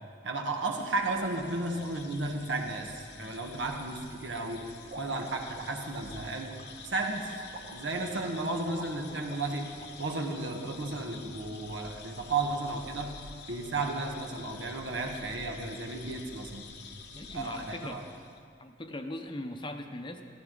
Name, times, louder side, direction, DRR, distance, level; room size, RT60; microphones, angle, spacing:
voice 1, 0.2-6.6 6.8-7.3 7.7-13.2 13.5-16.6 17.3-18.0, right 2 dB, 85° right, 2 dB, 1.3 m, -34 dB
sound 1, 0.6-18.4, left 4 dB, 60° left, 0.9 m, -48 dB
sound 2, 4.8-9.9, right 2 dB, 60° right, 0.9 m, -48 dB
voice 2, 17.1-18.0 18.6-20.2, left 1 dB, 25° left, 6 dB, 0.7 m, -39 dB
14.0 x 14.0 x 3.9 m, 2.3 s
head